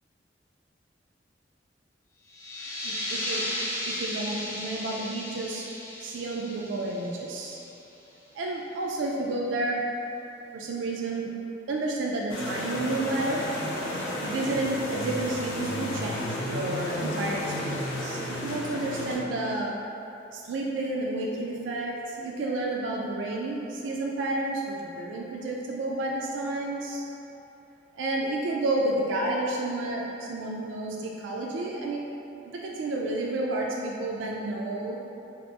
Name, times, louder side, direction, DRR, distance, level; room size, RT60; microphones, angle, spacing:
sound 1, 2.3-7.7, left 1 dB, 15° left, 0.5 m, -35 dB
voice 1, 2.8-3.4 3.8-5.7 6.0-7.6 8.3-9.8 10.5-11.3 11.7-13.4 14.2-19.7 20.3-27.0 27.9-32.0 32.6-35.0, right 2 dB, 80° right, -2 dB, 0.3 m, -30 dB
sound 2, 12.3-19.2, left 1 dB, 90° left, 0.5 m, -32 dB
3.7 x 2.8 x 3.2 m, 2.9 s
head